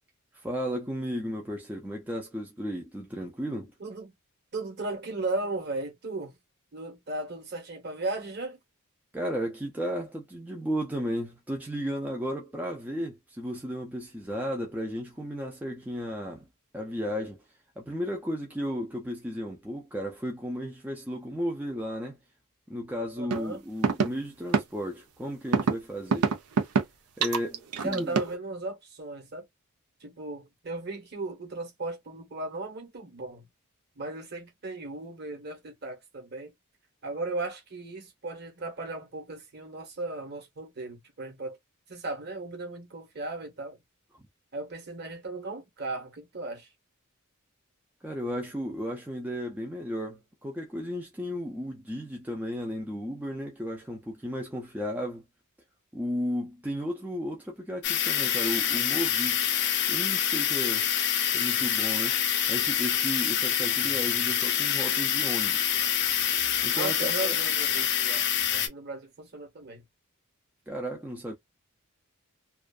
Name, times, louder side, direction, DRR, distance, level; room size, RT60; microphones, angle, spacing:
voice 1, 0.3-3.7 9.1-16.5 16.7-17.4 17.8-22.2 22.7-26.3 27.2-28.2 48.0-55.2 55.9-59.5 59.9-60.9 61.3-62.2 62.5-65.7 66.6-67.4 70.7-71.3, equal, 5° right, 0.4 m, -34 dB
voice 2, 3.8-4.1 4.5-6.4 6.7-8.6 23.2-23.6 27.8-29.4 30.0-33.5 34.0-36.5 37.0-41.6 41.9-43.8 44.5-46.7 66.8-68.2 68.5-69.8, right 2 dB, 50° right, 1.1 m, -36 dB
sound 1, 23.3-23.4 23.8-24.1 24.5-24.6 25.5-25.7 26.1-26.8 27.2-28.4, right 5 dB, 80° right, 0.5 m, -24 dB
sound 2, 57.8-68.7, left 9 dB, 50° left, 0.5 m, -26 dB
2.5 x 2.3 x 2.3 m
head